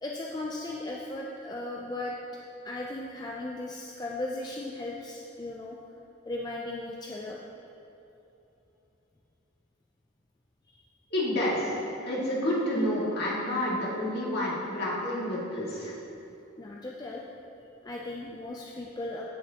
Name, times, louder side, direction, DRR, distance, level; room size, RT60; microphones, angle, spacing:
voice 1, 0.0-2.2 2.6-5.8 6.3-7.4 10.7-10.8 16.6-17.2 17.8-19.2, left 2 dB, 20° left, -2 dB, 0.5 m, -37 dB
voice 2, 11.1-11.8 12.0-16.0, left 1 dB, 55° left, -6 dB, 2.3 m, -29 dB
15.5 x 6.5 x 2.9 m, 2.9 s
head